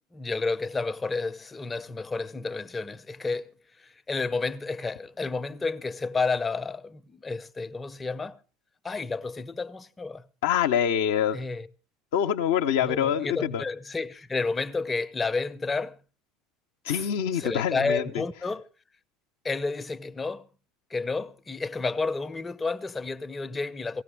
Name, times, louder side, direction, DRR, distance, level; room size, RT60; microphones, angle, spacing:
voice 1, 0.1-8.4 8.8-10.2 11.3-11.7 12.8-16.0 16.9-17.1 17.3-18.6 19.4-20.5 20.9-24.0, left 3 dB, 20° left, 0.7 m, -31 dB
voice 2, 10.4-11.4 12.1-13.6 16.8-18.1, left 9 dB, 70° left, 0.6 m, -25 dB
18.0 x 15.5 x 3.4 m
hypercardioid pair, 70°, 0 cm